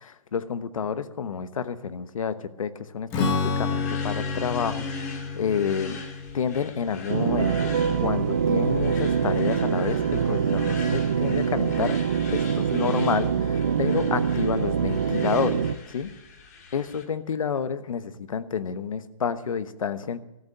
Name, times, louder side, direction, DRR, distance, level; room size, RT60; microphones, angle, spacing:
voice 1, 0.0-6.0 6.3-7.7 8.0-16.1 16.7-20.2, left 6 dB, 75° left, 12 dB, 1.1 m, -29 dB
Strum, 3.1-8.7, left 4 dB, 10° left, 0.9 m, -31 dB
sound 1, 3.2-17.0, left 4 dB, 30° left, 1.8 m, -42 dB
sound 2, 7.1-15.8, right 7 dB, 25° right, 0.4 m, -24 dB
14.0 x 8.1 x 8.4 m, 0.97 s
hypercardioid pair, 175°, 18 cm